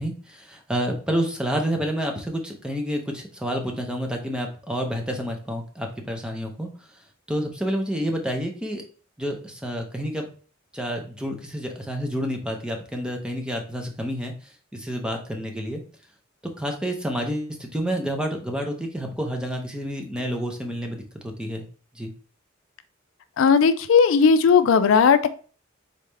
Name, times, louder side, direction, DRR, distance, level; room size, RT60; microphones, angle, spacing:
voice 1, 0.0-6.7 7.3-8.8 9.2-10.3 10.7-14.3 14.7-15.8 16.6-21.6 21.9-22.1, equal, 5° right, 3 dB, 0.7 m, -29 dB
voice 2, 23.4-25.3, left 6 dB, 75° left, 12 dB, 0.4 m, -17 dB
4.1 x 3.5 x 3.3 m, 0.40 s
head